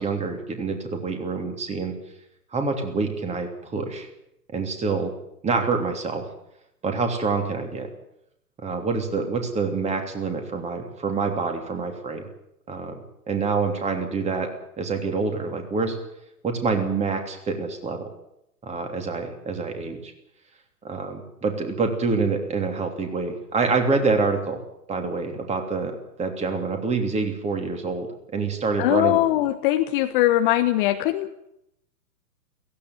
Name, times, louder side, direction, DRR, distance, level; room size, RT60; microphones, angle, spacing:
voice 1, 0.0-1.9 2.5-4.1 4.5-5.1 5.4-6.2 6.8-7.9 8.6-12.3 12.7-14.5 14.8-16.0 16.4-18.1 18.6-20.1 20.8-24.6 24.9-28.1 28.3-29.2, right 4 dB, 15° right, 5 dB, 3.1 m, -26 dB
voice 2, 28.8-31.5, left 14 dB, 30° left, 8 dB, 1.2 m, -21 dB
17.0 x 16.0 x 9.5 m, 0.79 s
hypercardioid pair, 125°, 48 cm